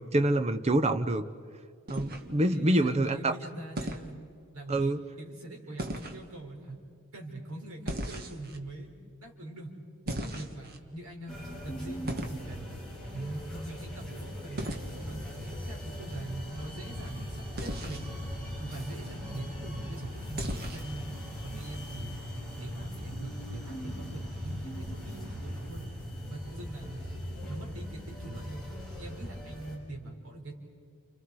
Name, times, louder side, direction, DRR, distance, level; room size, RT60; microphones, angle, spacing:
voice 1, 0.1-1.2 1.9-3.3 4.7-5.0, right 1 dB, 30° right, 9 dB, 0.9 m, -26 dB
sound 1, 1.9-2.6 3.8-4.1 5.8-6.2 7.9-8.6 10.1-10.8 12.1-12.4 14.6-14.9 17.6-18.1 20.4-20.9, right 1 dB, 45° right, 1.6 m, -36 dB
voice 2, 2.5-4.2 4.5-6.8 7.1-8.9 9.2-9.7 10.1-11.3 11.6-15.2 15.7-18.0 18.6-21.1 21.4-22.2 22.6-25.9 26.3-27.0 27.5-28.6 28.9-30.5, right 2 dB, 75° right, 1 dB, 4.3 m, -42 dB
sound 2, 11.3-29.8, equal, 5° left, 7.1 m, -39 dB
30.0 x 29.5 x 4.8 m, 2.2 s
head